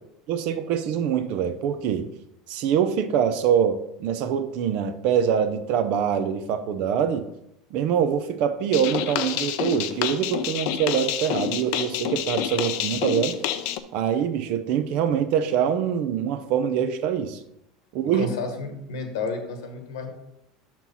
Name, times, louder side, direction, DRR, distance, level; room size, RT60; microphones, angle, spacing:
voice 1, 0.3-2.1 2.5-7.3 7.7-13.4 13.9-17.4 17.9-18.3, right 8 dB, 60° right, 10 dB, 0.7 m, -24 dB
sound 1, 8.7-13.8, left 11 dB, 70° left, 0.5 m, -28 dB
voice 2, 18.1-20.1, left 3 dB, 85° left, 5 dB, 1.2 m, -31 dB
6.0 x 4.5 x 5.5 m, 0.83 s
supercardioid pair, 100°, 2 cm